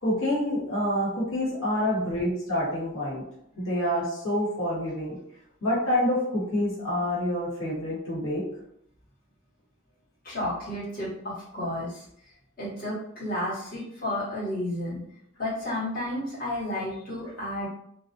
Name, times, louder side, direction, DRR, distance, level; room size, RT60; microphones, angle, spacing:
voice 1, 0.0-3.2 3.6-5.2 5.6-8.4, left 1 dB, 85° left, -7 dB, 1.1 m, -27 dB
voice 2, 10.2-12.1 12.6-15.0 15.4-17.7, left 1 dB, 45° left, -9 dB, 1.0 m, -32 dB
2.3 x 2.1 x 2.6 m, 0.73 s
head